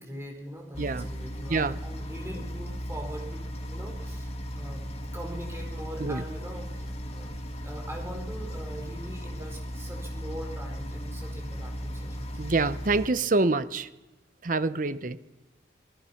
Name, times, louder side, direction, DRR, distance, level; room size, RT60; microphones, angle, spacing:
voice 1, 0.0-4.8 5.1-7.4 7.6-12.4, equal, 15° right, 1 dB, 4.5 m, -42 dB
sound 1, 0.7-13.1, equal, 35° left, 2.0 m, -36 dB
voice 2, 12.4-13.9 14.4-15.2, right 3 dB, 45° right, 14 dB, 0.8 m, -26 dB
26.5 x 19.5 x 5.8 m, 1.0 s
head